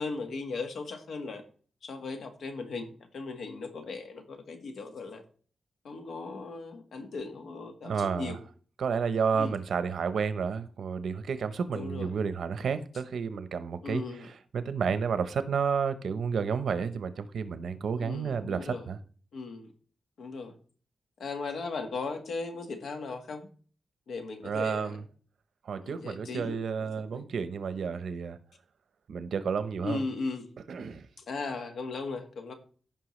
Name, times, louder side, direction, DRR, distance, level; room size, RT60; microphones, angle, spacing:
voice 1, 0.0-1.4 1.8-5.2 5.8-8.4 9.3-9.5 11.7-12.2 13.8-14.3 18.0-18.9 19.3-19.7 20.2-20.5 21.2-23.5 24.1-25.0 25.8-27.2 29.8-30.5 31.2-32.5, left 3 dB, 90° left, 1.5 m, -37 dB
voice 2, 7.8-8.4 8.8-14.0 14.5-19.0 24.4-25.0 25.7-28.4 29.1-30.1 30.7-31.1, right 6 dB, 80° right, 0.8 m, -31 dB
15.0 x 5.6 x 3.2 m
wide cardioid pair, 140°, 0 cm